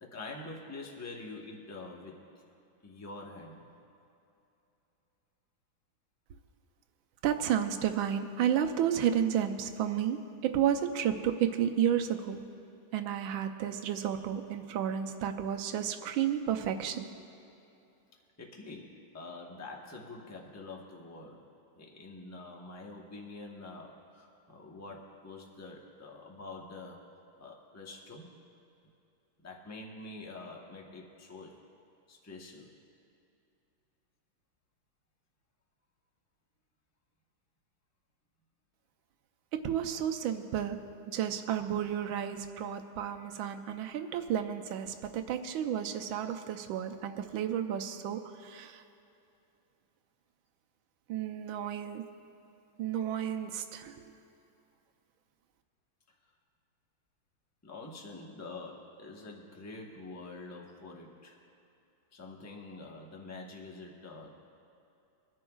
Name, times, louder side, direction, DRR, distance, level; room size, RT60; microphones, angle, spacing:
voice 1, 0.0-2.2 2.8-3.6 18.4-21.5 21.8-27.0 27.4-28.3 29.4-31.5 32.1-32.7 57.6-61.4 62.1-64.3, left 3 dB, 15° left, -1 dB, 0.7 m, -46 dB
voice 2, 7.2-12.5 12.9-17.1 39.5-48.8 51.1-52.1 52.8-54.0, right 9 dB, 80° right, 6 dB, 1.4 m, -32 dB
24.0 x 10.5 x 2.4 m, 2.8 s
omnidirectional pair, 2.2 m